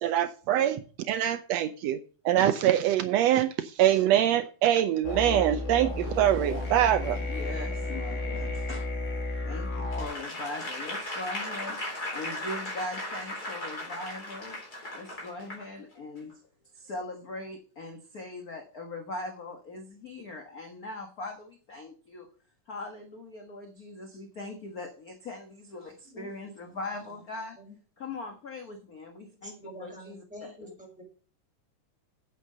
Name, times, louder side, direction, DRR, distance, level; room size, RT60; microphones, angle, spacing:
voice 1, 0.0-0.8 1.1-7.2, right 11 dB, 90° right, 11 dB, 1.5 m, -24 dB
sound 1, 5.0-10.1, left 2 dB, 75° left, 4.1 m, -32 dB
sound 2, 5.7-8.8 11.1-11.2, right 8 dB, 65° right, 2.5 m, -47 dB
voice 2, 7.2-8.9 9.4-14.6 14.9-16.4 16.7-22.3 22.7-27.6 28.0-30.7, left 2 dB, 50° left, 4 dB, 1.1 m, -40 dB
Applause / Crowd, 9.9-15.6 16.2-16.3, left 1 dB, 30° left, 4.2 m, -37 dB
voice 3, 29.4-31.0, equal, ahead, -1 dB, 5.2 m, -46 dB
9.0 x 8.3 x 5.4 m, 0.39 s
omnidirectional pair, 3.7 m